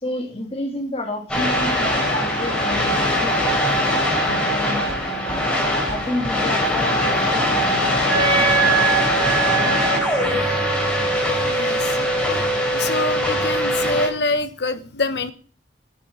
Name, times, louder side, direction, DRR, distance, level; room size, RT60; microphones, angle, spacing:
voice 1, 0.0-5.5 5.9-9.0 9.4-10.6, left 1 dB, 35° left, 2 dB, 2.9 m, -31 dB
sound 1, 1.3-14.1, left 1 dB, 5° left, 4.1 m, -21 dB
Wind instrument woodwind instrument, 8.1-13.7, right 6 dB, 75° right, 4.5 m, -25 dB
voice 2, 11.4-12.0 12.3-12.4 12.7-15.3, left 2 dB, 70° left, 10 dB, 1.1 m, -25 dB
9.8 x 7.6 x 7.3 m, 0.41 s
head